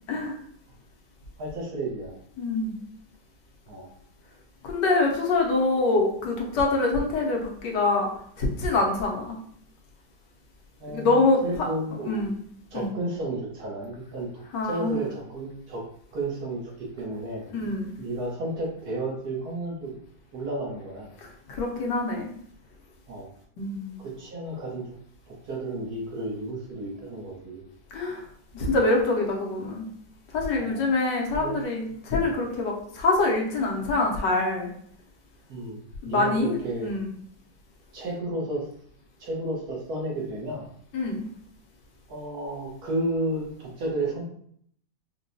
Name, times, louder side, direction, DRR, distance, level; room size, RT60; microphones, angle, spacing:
voice 1, 1.4-2.2 3.7-3.9 10.8-12.3 12.7-15.8 16.1-17.4 18.0-19.9 20.3-21.1 23.1-23.3 24.0-24.8 25.3-27.6 30.6-30.8 31.3-31.6 35.5-36.9 37.9-38.7 39.2-40.7 42.1-44.2, right 2 dB, 65° right, -2 dB, 1.4 m, -32 dB
voice 2, 2.4-2.7 4.6-8.1 8.4-9.4 10.9-11.7 12.0-12.3 12.7-12.9 14.5-15.0 17.5-17.9 21.5-22.3 23.6-24.0 27.9-28.2 28.5-29.9 30.3-34.7 36.0-37.1 40.9-41.3, left 2 dB, 80° left, 0 dB, 1.4 m, -25 dB
4.6 x 2.2 x 2.6 m, 0.64 s
omnidirectional pair, 1.9 m